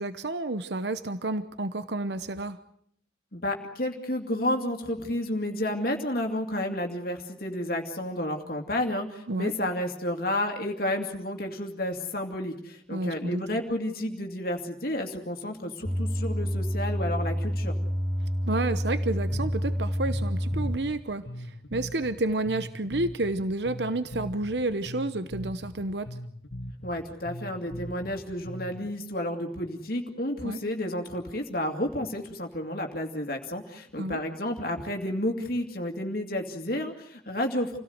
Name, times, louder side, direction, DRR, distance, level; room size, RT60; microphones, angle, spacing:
voice 1, 0.0-2.6 9.3-9.5 12.9-13.6 18.4-26.1 30.4-30.6 34.0-34.2, right 2 dB, 70° right, 12 dB, 1.0 m, -30 dB
voice 2, 3.3-17.7 26.8-37.8, left 1 dB, 55° left, 3 dB, 2.4 m, -31 dB
sound 1, 15.8-20.8, equal, 25° right, 2.8 m, -28 dB
Bass guitar, 19.3-28.9, equal, 80° left, 1.6 m, -40 dB
28.0 x 17.5 x 8.0 m, 0.67 s
head